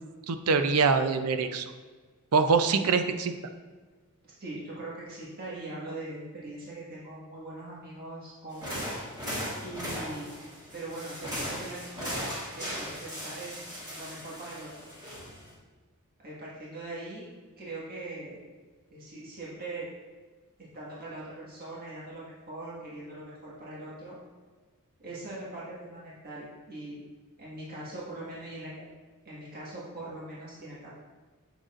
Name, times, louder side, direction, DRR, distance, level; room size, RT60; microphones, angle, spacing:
voice 1, 0.3-1.6 2.3-3.3, right 5 dB, 80° right, 8 dB, 0.5 m, -24 dB
voice 2, 4.4-9.0 9.6-10.3 10.7-14.7 16.2-17.2 17.6-18.4 18.9-19.9 20.7-24.2 25.0-27.0 27.4-28.9 29.2-30.9, right 2 dB, 45° right, -7 dB, 1.7 m, -41 dB
sound 1, 8.5-15.5, equal, 20° right, 2.1 m, -38 dB
7.9 x 6.4 x 2.5 m, 1.4 s
head